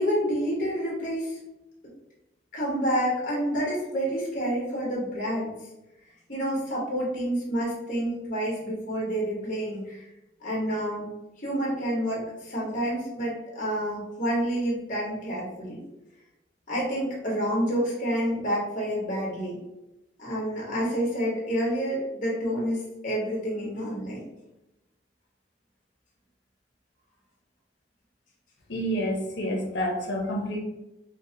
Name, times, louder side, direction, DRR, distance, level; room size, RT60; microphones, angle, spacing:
voice 1, 0.0-1.4 2.5-5.5 6.3-10.0 10.4-11.1 11.4-15.8 16.7-19.6 20.2-24.2, equal, 45° left, -4 dB, 1.2 m, -28 dB
voice 2, 28.7-30.6, equal, 70° left, 0 dB, 0.8 m, -28 dB
4.4 x 2.1 x 2.7 m, 0.94 s
head